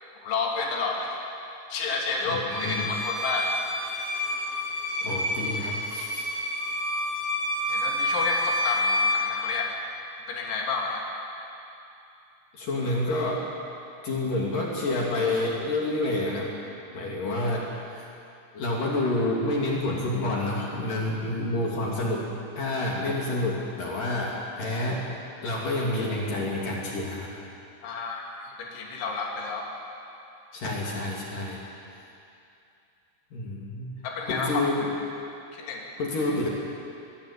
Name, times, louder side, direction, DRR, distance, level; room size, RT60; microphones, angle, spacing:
voice 1, 0.2-1.2 1.7-3.6 7.7-9.8 10.3-11.1 27.8-29.7 34.0-34.7 35.5-35.9, left 4 dB, 80° left, -1 dB, 5.2 m, -30 dB
voice 2, 2.3-2.9 5.0-6.3 12.5-13.5 14.0-16.5 16.9-18.1 18.5-25.1 25.4-27.3 30.5-31.6 33.3-34.0 34.3-34.9 36.0-36.5, left 2 dB, 50° left, -3 dB, 3.9 m, -28 dB
Bowed string instrument, 2.5-9.3, left 1 dB, 40° right, 4.9 m, -28 dB
22.0 x 21.5 x 8.4 m, 2.7 s
omnidirectional pair, 5.4 m